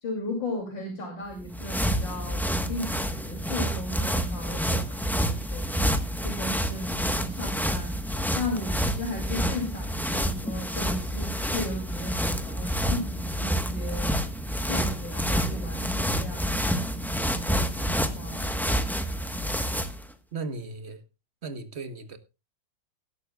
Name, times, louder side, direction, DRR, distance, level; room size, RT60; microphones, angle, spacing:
voice 1, 0.0-5.8 6.2-8.0 8.3-14.2 14.7-16.7 17.3-18.5, left 1 dB, 65° left, 3.5 m, -36 dB
sound 1, 1.3-20.1, equal, ahead, 0.6 m, -28 dB
voice 2, 20.3-21.0 21.4-22.2, right 3 dB, 40° right, 1.3 m, -36 dB
19.0 x 11.5 x 2.3 m
omnidirectional pair, 2.1 m